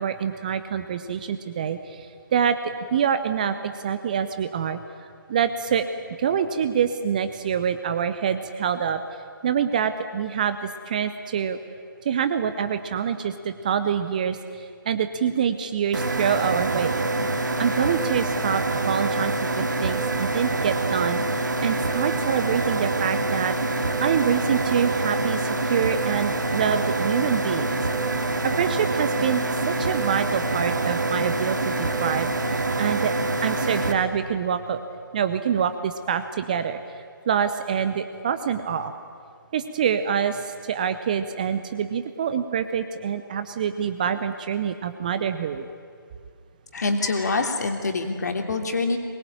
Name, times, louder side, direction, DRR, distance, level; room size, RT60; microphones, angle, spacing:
voice 1, 0.0-2.1 2.3-2.6 2.9-4.8 5.3-5.9 6.2-9.0 9.4-11.6 12.0-17.0 17.6-21.2 21.6-23.5 24.0-27.8 28.2-32.3 32.8-33.1 33.4-34.8 35.1-38.9 39.5-45.6, right 7 dB, 20° right, 11 dB, 0.7 m, -26 dB
sound 1, 15.9-33.9, right 2 dB, 55° right, 2.5 m, -25 dB
voice 2, 46.7-49.0, left 3 dB, 50° left, 4 dB, 3.1 m, -25 dB
23.0 x 20.5 x 9.0 m, 2.2 s
figure-of-eight pair, 155°, 12 cm